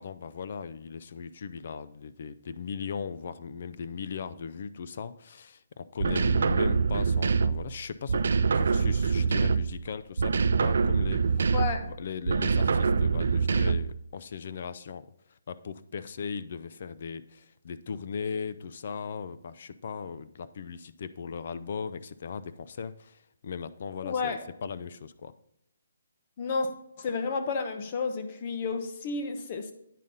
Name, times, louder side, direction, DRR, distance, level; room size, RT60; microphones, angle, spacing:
voice 1, 0.0-11.5 11.8-25.3, left 6 dB, 50° left, 13 dB, 0.4 m, -38 dB
sound 1, 6.0-7.7 8.1-9.8 10.2-11.9 12.3-14.0, right 5 dB, 65° right, 0.4 m, -25 dB
voice 2, 11.5-11.8 24.0-24.4 26.4-26.7 27.0-29.7, left 4 dB, 35° left, 8 dB, 0.9 m, -31 dB
9.3 x 5.2 x 3.9 m, 0.79 s
hypercardioid pair, 165°, 0 cm